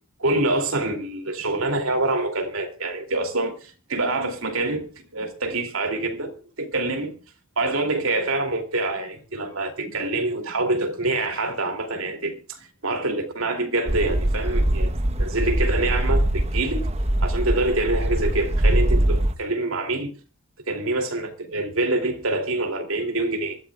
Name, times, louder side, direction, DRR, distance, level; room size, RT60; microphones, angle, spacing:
voice 1, 0.2-4.8 5.1-7.2 7.6-14.9 15.2-16.8 17.2-20.1 20.7-23.6, right 2 dB, 80° right, 2.8 m, -26 dB
sound 1, 13.9-19.3, right 1 dB, 30° right, 1.0 m, -22 dB
24.0 x 13.0 x 2.3 m
head